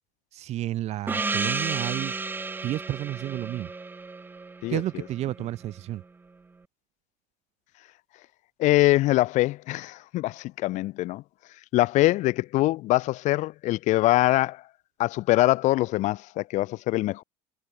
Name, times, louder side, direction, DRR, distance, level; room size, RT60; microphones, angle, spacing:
voice 1, 0.3-2.1 2.6-3.7 4.7-6.0, right 14 dB, 50° right, 2.9 m, -31 dB
Gong, 1.1-5.4, right 3 dB, 15° right, 1.6 m, -32 dB
voice 2, 4.6-5.0 8.6-11.2 11.7-14.6 15.0-17.2, left 17 dB, 55° left, 1.7 m, -23 dB
cardioid pair, 130°, 14 cm